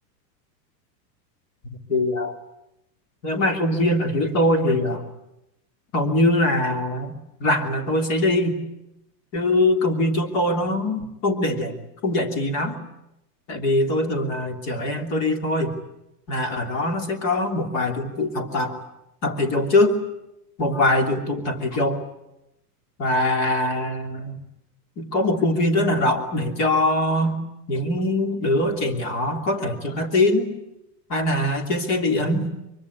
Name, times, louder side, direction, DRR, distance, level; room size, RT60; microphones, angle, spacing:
voice 1, 1.9-2.4 3.2-5.1 5.9-7.1 7.4-8.6 9.3-11.7 12.0-12.8 13.5-15.8 16.3-18.8 19.2-20.0 20.6-22.0 23.0-24.4 25.0-27.4 27.7-30.5 31.1-32.4, left 1 dB, 30° left, 5 dB, 3.1 m, -22 dB
24.0 x 24.0 x 9.7 m, 0.88 s
supercardioid pair, 175°, 50 cm